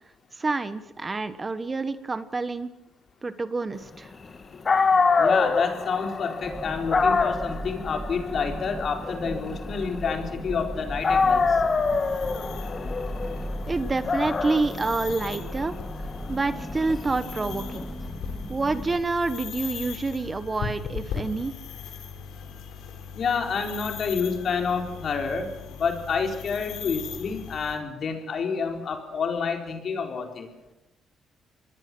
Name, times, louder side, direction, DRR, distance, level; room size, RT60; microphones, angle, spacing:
voice 1, 0.3-2.7 3.2-4.1 12.8-15.7 16.3-17.9 18.5-21.5, right 3 dB, 25° right, 13 dB, 1.2 m, -28 dB
Dog, 4.4-4.5 4.7-10.7 11.0-17.8, left 4 dB, 35° left, 2.1 m, -26 dB
voice 2, 5.2-11.6 23.1-30.5, left 5 dB, 55° left, 4 dB, 4.2 m, -28 dB
sound 1, 6.4-19.0, equal, 5° right, 2.0 m, -37 dB
sound 2, 11.0-27.8, left 7 dB, 85° left, 3.7 m, -39 dB
27.0 x 21.0 x 6.2 m, 0.95 s
cardioid pair, 90°, 0 cm